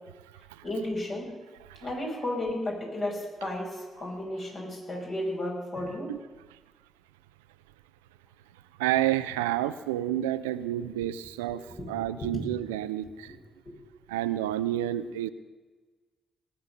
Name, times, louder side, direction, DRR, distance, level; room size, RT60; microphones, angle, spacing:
voice 1, 0.6-1.3 1.8-6.1 11.8-12.4, left 1 dB, 50° left, -2 dB, 5.4 m, -33 dB
voice 2, 8.8-13.4 14.1-15.3, right 13 dB, 80° right, 14 dB, 0.4 m, -30 dB
19.0 x 8.3 x 6.6 m, 1.3 s
figure-of-eight pair, 40°, 0 cm